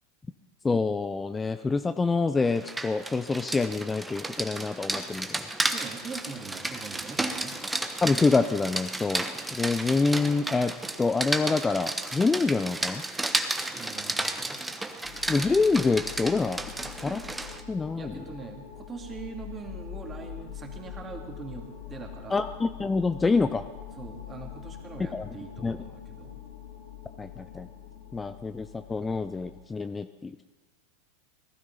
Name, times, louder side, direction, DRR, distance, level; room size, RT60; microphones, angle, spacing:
voice 1, 0.6-5.5 8.0-9.3 9.5-10.7 11.0-13.0 15.3-16.6 17.0-17.2 17.7-18.1 22.3-23.6 25.1-25.3 25.6-25.8 27.2-27.7 28.1-30.4, left 4 dB, 15° left, 10 dB, 0.5 m, -26 dB
Rain, 2.5-17.6, right 2 dB, 10° right, 1.1 m, -33 dB
voice 2, 5.7-7.5 13.7-14.6 18.0-21.6 21.9-22.4 24.0-26.4, right 5 dB, 25° right, 2 dB, 2.8 m, -42 dB
sound 1, 15.0-29.6, left 9 dB, 80° left, 4.0 m, -44 dB
19.0 x 12.5 x 5.6 m, 1.3 s
hypercardioid pair, 100°, 0 cm